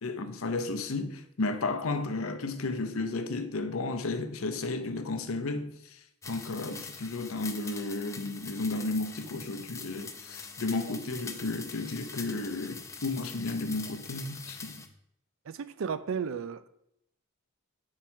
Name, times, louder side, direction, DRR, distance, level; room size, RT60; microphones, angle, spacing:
voice 1, 0.0-6.0 6.3-14.8, left 3 dB, 70° left, 0.6 m, -33 dB
sound 1, 6.2-14.9, left 5 dB, 15° left, 0.4 m, -44 dB
voice 2, 15.4-16.7, right 6 dB, 60° right, 0.4 m, -34 dB
5.7 x 4.7 x 4.3 m
head